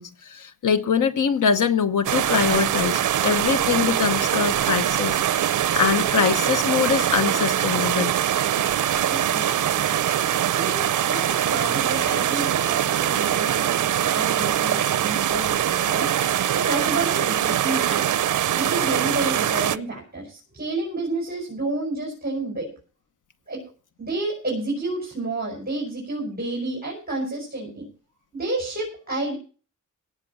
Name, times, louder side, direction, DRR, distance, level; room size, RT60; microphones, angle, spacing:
voice 1, 0.0-5.2 5.5-8.1, left 7 dB, 85° left, 1.2 m, -23 dB
sound 1, 2.0-19.8, right 11 dB, 85° right, 0.6 m, -23 dB
voice 2, 9.1-10.0 10.4-16.1 16.5-18.0 18.6-22.7 23.5-23.6 24.0-27.8 28.3-29.3, right 2 dB, 30° right, 5.4 m, -30 dB
17.5 x 6.0 x 7.2 m
wide cardioid pair, 165°, 30 cm